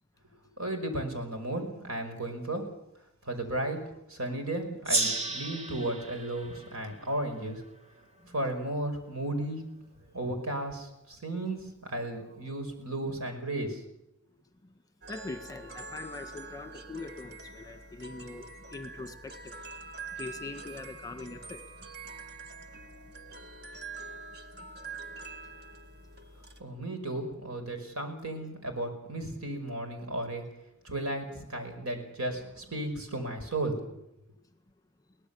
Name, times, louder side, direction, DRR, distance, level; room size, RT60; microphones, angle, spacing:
voice 1, 0.6-2.6 3.2-7.6 8.3-9.6 10.1-13.8 26.6-30.4 30.8-34.0, right 1 dB, 80° right, 5 dB, 5.4 m, -34 dB
Gong, 4.8-8.0, right 2 dB, 30° right, 1.7 m, -34 dB
sound 1, 15.0-26.6, right 3 dB, 50° right, 1.9 m, -45 dB
voice 2, 15.1-18.4 18.7-19.5 20.2-21.6, left 3 dB, 15° left, 8 dB, 1.5 m, -42 dB
23.0 x 18.0 x 7.1 m, 0.85 s
head